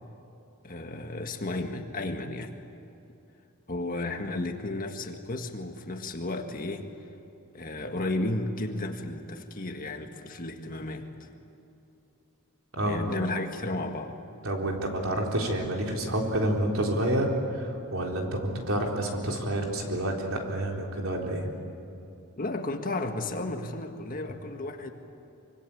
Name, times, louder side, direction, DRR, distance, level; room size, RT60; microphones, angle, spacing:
voice 1, 0.6-2.5 3.7-6.9 7.5-11.3 12.8-14.2 22.3-24.9, left 2 dB, 40° left, 5 dB, 1.7 m, -33 dB
voice 2, 12.7-13.0 14.4-21.5, right 1 dB, 65° right, 0 dB, 4.0 m, -29 dB
25.0 x 25.0 x 8.6 m, 2.7 s
head